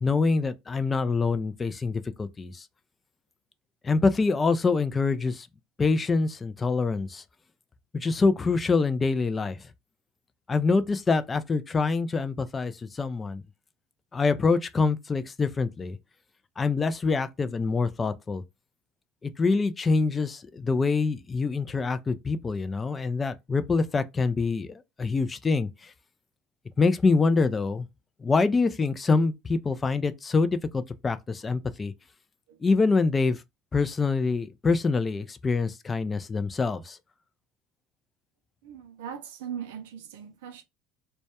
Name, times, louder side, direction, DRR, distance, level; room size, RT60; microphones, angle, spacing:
voice 1, 0.0-2.7 3.8-5.5 5.8-7.2 7.9-9.6 10.5-13.4 14.1-16.0 16.6-18.4 19.2-25.9 26.8-27.9 28.2-31.9 32.6-33.4 33.7-37.0, left 4 dB, 20° left, 0.3 m, -25 dB
voice 2, 38.6-40.6, right 8 dB, 90° right, 0.4 m, -39 dB
2.2 x 2.0 x 2.8 m
supercardioid pair, 110°, 0 cm